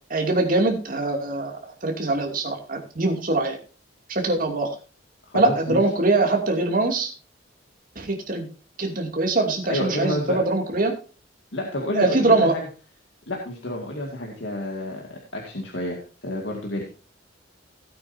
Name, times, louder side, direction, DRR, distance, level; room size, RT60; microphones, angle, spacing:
voice 1, 0.1-3.6 4.1-4.7 5.3-7.1 8.0-8.5 8.8-10.9 11.9-12.6, right 2 dB, 50° right, 2 dB, 2.7 m, -22 dB
voice 2, 5.2-5.8 9.7-10.4 11.5-12.6 13.3-16.8, left 1 dB, 80° left, 0 dB, 2.2 m, -30 dB
16.5 x 8.9 x 2.8 m, 0.35 s
head